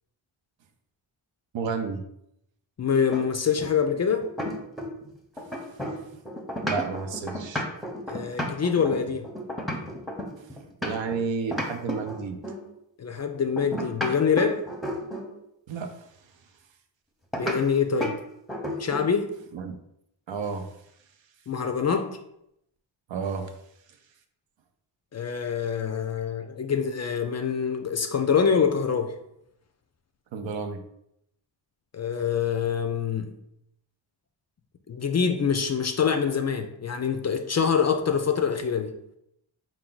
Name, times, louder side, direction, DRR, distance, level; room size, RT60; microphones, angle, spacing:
voice 1, 1.5-2.0 5.4-5.7 6.6-7.6 10.4-10.5 10.8-12.4 15.7-16.1 19.5-19.8 20.3-20.7 23.1-23.5 30.3-30.8, right 5 dB, 70° right, 6 dB, 0.6 m, -31 dB
voice 2, 2.8-4.2 8.1-9.2 13.0-14.6 17.3-18.2 18.8-19.3 21.5-22.2 25.1-29.2 31.9-33.3 34.9-38.9, left 6 dB, 35° left, 6 dB, 0.4 m, -25 dB
sound 1, 3.1-5.1 5.4-11.2 11.5-12.7 13.6-15.3 17.3-17.6 18.0-18.2 18.5-19.1, equal, ahead, 0.7 m, -32 dB
4.5 x 2.2 x 3.8 m, 0.78 s
cardioid pair, 80°, 47 cm